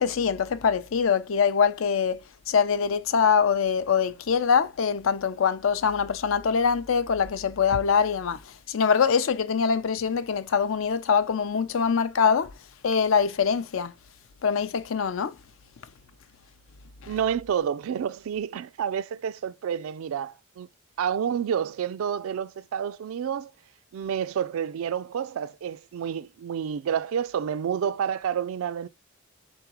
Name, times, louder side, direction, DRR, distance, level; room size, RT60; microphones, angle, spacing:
voice 1, 0.0-2.2 2.5-8.4 8.7-12.5 12.8-13.9 14.4-15.3 17.0-17.1, left 6 dB, 70° left, 0.5 m, -23 dB
voice 2, 17.1-20.7 21.0-23.5 23.9-28.9, right 8 dB, 80° right, 0.3 m, -29 dB
3.9 x 3.6 x 2.9 m
head